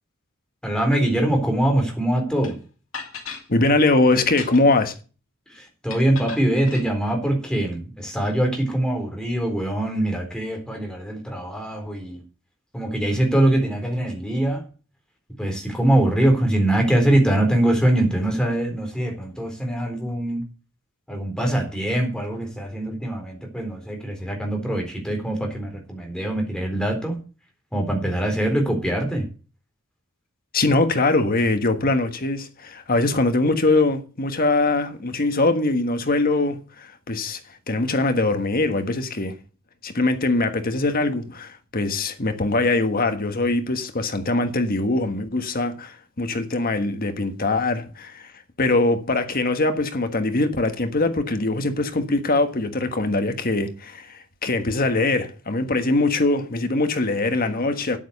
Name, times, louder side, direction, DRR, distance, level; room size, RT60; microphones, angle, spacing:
voice 1, 0.6-2.6 5.5-12.2 12.7-14.6 15.4-20.4 21.1-27.2 27.7-29.3, right 1 dB, 5° left, 3.8 m, -23 dB
sound 1, 2.4-2.5 2.9-3.5 4.2-4.8 5.9-6.9, left 6 dB, 65° left, 2.6 m, -36 dB
voice 2, 3.5-4.9 30.5-39.3 39.8-48.3 48.6-58.0, left 2 dB, 45° left, 1.4 m, -22 dB
9.5 x 8.9 x 6.6 m
head